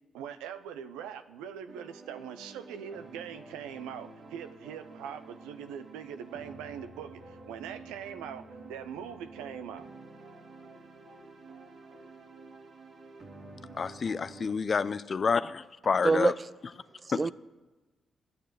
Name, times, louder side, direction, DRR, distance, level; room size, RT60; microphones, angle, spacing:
voice 1, 0.1-9.9, right 8 dB, 85° right, 0.5 m, -42 dB
sound 1, 1.7-14.5, right 3 dB, 65° right, 2.0 m, -49 dB
voice 2, 13.8-16.3 17.1-17.2, left 5 dB, 50° left, 0.5 m, -28 dB
voice 3, 16.0-16.5 17.0-17.3, right 3 dB, 35° right, 0.4 m, -26 dB
12.0 x 6.7 x 9.2 m
hypercardioid pair, 40°, 0 cm